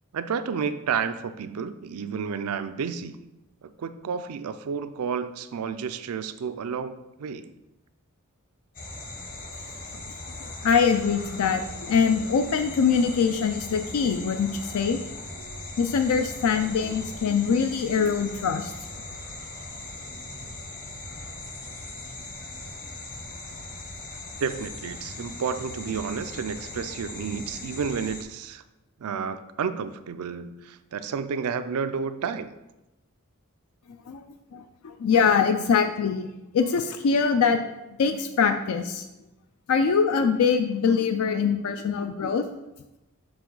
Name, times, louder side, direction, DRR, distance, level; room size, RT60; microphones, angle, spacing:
voice 1, 0.1-3.2 3.6-7.5 24.4-28.6 29.0-32.5, right 6 dB, 90° right, 12 dB, 0.4 m, -31 dB
sound 1, 8.7-28.2, left 2 dB, 40° left, 0.9 m, -39 dB
voice 2, 10.4-15.0 15.8-18.7 34.1-34.2 34.5-36.3 36.5-37.6 38.0-39.1 39.7-42.4, left 6 dB, 80° left, 7 dB, 0.4 m, -23 dB
6.2 x 4.8 x 3.9 m, 0.96 s
head